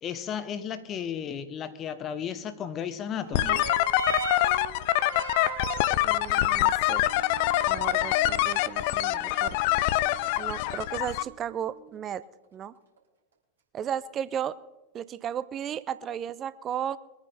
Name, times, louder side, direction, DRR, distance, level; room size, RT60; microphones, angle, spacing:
voice 1, 0.0-3.7, left 8 dB, 30° left, 0.9 m, -34 dB
sound 1, 3.2-12.1 13.0-13.1, right 5 dB, 70° right, 4.7 m, -40 dB
sound 2, 3.3-11.2, left 15 dB, 45° left, 0.5 m, -25 dB
voice 2, 6.0-7.0 7.7-9.6 10.4-12.3 12.5-12.7 13.7-14.6 14.9-17.0, right 9 dB, 30° right, 0.5 m, -34 dB
23.5 x 9.6 x 4.2 m
figure-of-eight pair, 90°, 0 cm